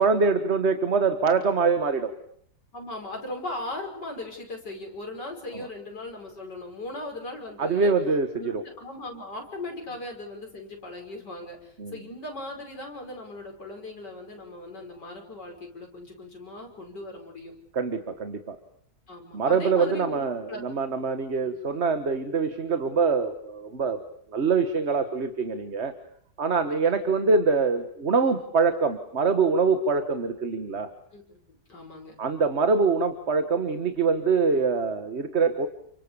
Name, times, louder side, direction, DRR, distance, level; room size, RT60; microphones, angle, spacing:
voice 1, 0.0-2.1 5.5-5.7 7.6-8.6 11.8-12.0 17.7-18.6 19.3-24.0 24.3-25.9 26.4-30.9 32.2-35.7, right 4 dB, 40° right, 9 dB, 1.6 m, -24 dB
voice 2, 2.7-7.9 8.3-17.5 19.1-20.6 21.4-21.6 26.5-27.1 31.1-32.1, left 2 dB, 90° left, 2 dB, 6.2 m, -38 dB
29.5 x 25.5 x 7.0 m, 0.65 s
omnidirectional pair, 1.8 m